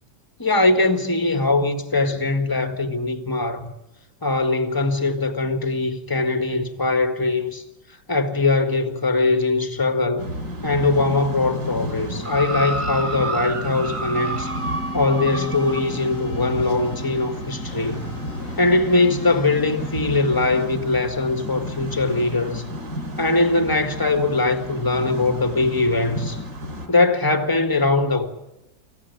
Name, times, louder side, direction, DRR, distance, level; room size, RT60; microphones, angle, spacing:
voice 1, 0.4-3.7 4.2-7.6 8.1-10.3 10.6-14.5 14.9-18.1 18.6-22.6 23.2-26.4 26.9-28.3, left 3 dB, 10° left, 1.6 m, -21 dB
sound 1, 10.2-26.9, equal, 55° right, 5.4 m, -32 dB
sound 2, 12.2-15.9 16.7-16.8, right 2 dB, 30° right, 0.6 m, -29 dB
sound 3, 14.1-20.6, left 3 dB, 55° left, 1.3 m, -39 dB
26.0 x 15.5 x 9.5 m
omnidirectional pair, 2.0 m